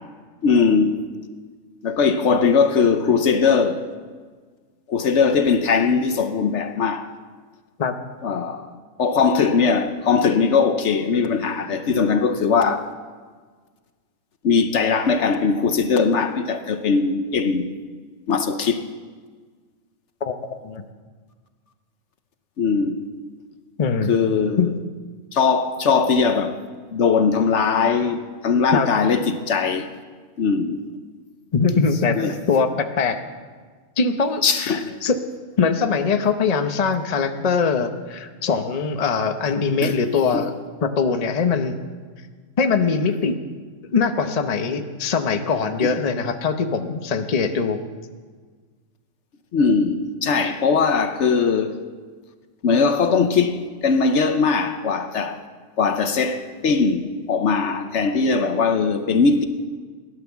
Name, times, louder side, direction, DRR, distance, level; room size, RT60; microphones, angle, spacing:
voice 1, 0.4-1.0 1.8-3.9 4.9-7.1 8.2-8.7 9.0-12.9 14.4-17.7 18.3-18.8 22.6-23.0 24.1-24.7 25.3-26.6 26.9-29.9 30.4-30.8 32.2-32.3 34.4-34.9 39.8-40.0 40.3-40.5 45.8-45.9 49.5-51.8 52.6-55.4 55.8-59.4, left 5 dB, 65° left, 1.1 m, -20 dB
voice 2, 20.2-20.8 23.8-24.1 24.6-24.7 28.7-28.9 31.5-32.2 32.5-33.2 34.0-35.2 35.6-40.5 40.8-41.8 42.6-43.4 43.9-47.8, left 5 dB, 35° left, 0.8 m, -22 dB
15.5 x 11.0 x 7.0 m
omnidirectional pair, 1.3 m